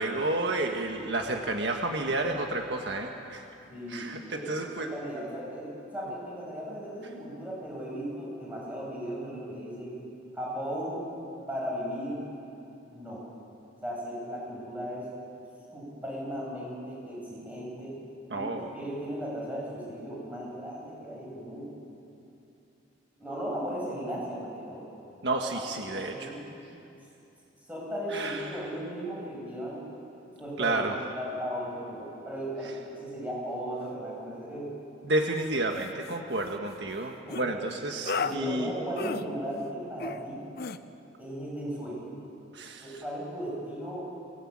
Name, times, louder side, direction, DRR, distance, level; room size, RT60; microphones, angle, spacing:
voice 1, 0.0-3.4 3.9-4.9 18.3-18.7 25.2-26.3 28.1-28.7 30.6-31.0 35.0-38.7 42.5-42.8, right 2 dB, 65° right, 3 dB, 1.6 m, -31 dB
voice 2, 3.7-4.5 4.8-9.9 10.3-11.0 11.5-12.2 12.9-13.2 13.8-15.0 15.7-17.9 18.3-21.7 23.2-24.9 25.8-26.5 27.7-29.8 30.4-30.8 31.1-34.7 37.2-37.4 38.2-40.5 41.2-42.0 42.8-44.1, equal, 10° right, -5 dB, 8.0 m, -36 dB
sound 1, 35.4-35.5 35.8-36.1 37.3-37.5 38.1-38.4 39.0-39.3 40.0-40.2 40.6-40.8, left 4 dB, 55° left, 0.8 m, -33 dB
23.5 x 19.5 x 8.8 m, 2.8 s
head